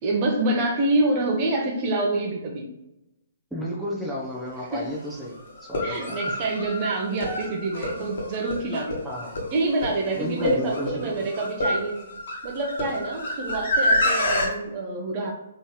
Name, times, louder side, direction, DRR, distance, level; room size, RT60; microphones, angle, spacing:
voice 1, 0.0-2.7 4.7-4.9 5.8-9.1 9.5-12.0 12.4-15.3, right 2 dB, 35° right, 1 dB, 1.0 m, -26 dB
voice 2, 3.5-6.3 8.0-8.2 9.0-9.4 10.1-11.3, equal, 5° right, -5 dB, 0.8 m, -33 dB
sound 1, 4.5-4.6 5.6-14.5, left 1 dB, 55° left, 1.4 m, -27 dB
4.0 x 3.9 x 3.2 m, 0.88 s
figure-of-eight pair, 125°, 0 cm